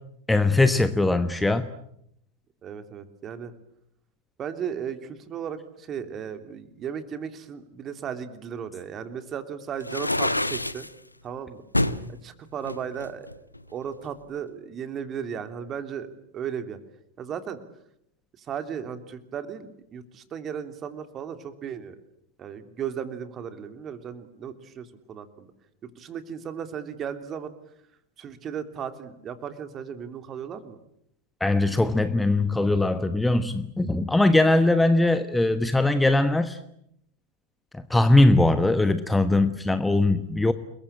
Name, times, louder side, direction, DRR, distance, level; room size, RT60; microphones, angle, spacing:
voice 1, 0.3-1.7 31.4-36.6 37.7-40.5, left 2 dB, 5° left, 11 dB, 1.2 m, -21 dB
voice 2, 2.6-3.5 4.4-10.9 11.2-11.6 12.1-13.3 13.7-16.8 17.2-17.6 18.4-21.9 22.4-25.5 25.8-27.5 28.2-30.8, right 8 dB, 30° right, 9 dB, 2.9 m, -35 dB
sound 1, 9.8-10.9 11.7-12.0 12.6-13.7, left 1 dB, 85° left, 1.2 m, -26 dB
29.5 x 22.0 x 8.8 m, 0.76 s
figure-of-eight pair, 90°, 0 cm